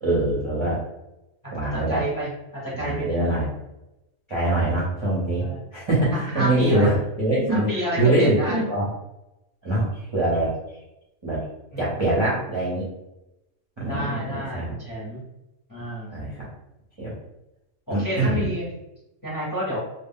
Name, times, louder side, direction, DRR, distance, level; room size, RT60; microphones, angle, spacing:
voice 1, 0.0-0.8 1.5-2.0 2.7-3.5 4.3-5.4 5.7-7.7 8.0-8.9 9.6-10.5 11.2-11.4 11.8-12.9 13.8-14.7 16.1-16.5 17.0-17.1 17.9-18.5, right 1 dB, 30° right, -6 dB, 0.5 m, -23 dB
voice 2, 1.7-3.5 5.4-5.7 6.1-6.9 7.5-8.7 11.7-12.3 13.9-15.2 15.7-16.1 17.9-18.7 19.2-19.8, equal, 20° left, -6 dB, 0.7 m, -30 dB
2.2 x 2.2 x 3.5 m, 0.92 s
omnidirectional pair, 1.4 m